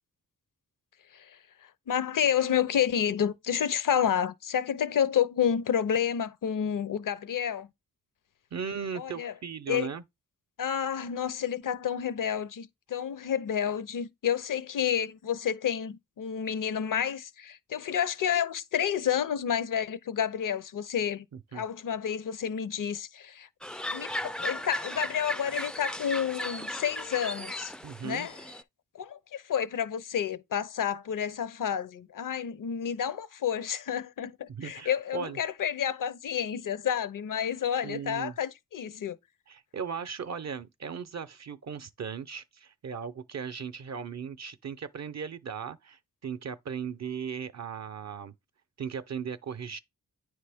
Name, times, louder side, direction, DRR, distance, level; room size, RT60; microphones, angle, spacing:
voice 1, 1.1-7.7 9.0-9.3 9.7-9.9 10.6-21.3 21.5-23.5 23.9-27.7 28.0-28.4 28.9-39.2, left 8 dB, 60° left, 0.6 m, -30 dB
voice 2, 8.5-10.0 21.5-21.6 27.8-28.3 34.5-35.4 37.8-38.3 39.5-48.3 48.8-49.8, right 7 dB, 50° right, 0.6 m, -37 dB
sound 1, 23.6-28.6, left 1 dB, ahead, 0.3 m, -36 dB
9.3 x 3.2 x 3.4 m
cardioid pair, 50°, 36 cm